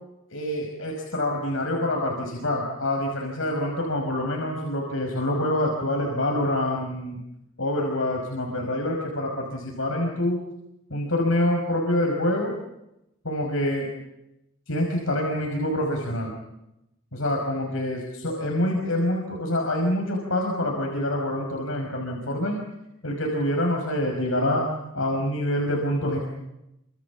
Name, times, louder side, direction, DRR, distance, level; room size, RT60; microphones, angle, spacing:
voice 1, 0.3-7.2 7.6-10.4 10.9-12.5 13.2-13.9 14.7-16.3 17.1-22.6 23.0-24.7 24.9-26.2, left 1 dB, 80° left, 1 dB, 5.6 m, -26 dB
29.5 x 26.5 x 7.3 m, 0.88 s
head